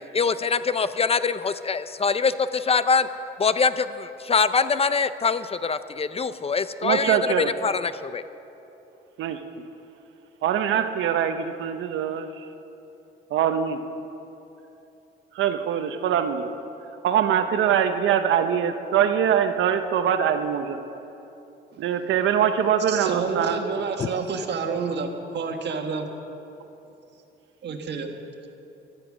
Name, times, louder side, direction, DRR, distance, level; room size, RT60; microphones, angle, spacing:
voice 1, 0.1-3.1 3.4-8.2 24.0-24.1, left 5 dB, 30° left, 13 dB, 0.5 m, -24 dB
voice 2, 6.8-7.5 9.2-9.4 10.4-12.4 13.3-13.8 15.3-16.5 17.0-20.8 21.8-23.6, right 8 dB, 80° right, 8 dB, 0.8 m, -23 dB
voice 3, 22.9-26.0 27.6-28.1, right 5 dB, 60° right, 4 dB, 1.5 m, -29 dB
14.0 x 12.5 x 6.2 m, 3.0 s
cardioid pair, 90°, 20 cm